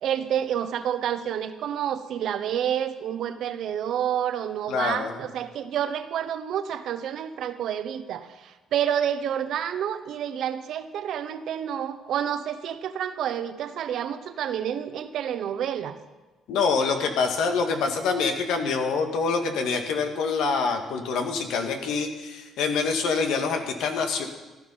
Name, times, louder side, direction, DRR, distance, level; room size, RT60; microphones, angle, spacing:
voice 1, 0.0-16.0, right 9 dB, 65° right, 10 dB, 1.0 m, -29 dB
voice 2, 4.7-5.2 16.5-24.3, left 4 dB, 80° left, 5 dB, 1.9 m, -26 dB
15.5 x 11.5 x 5.6 m, 1.2 s
cardioid pair, 125°, 0 cm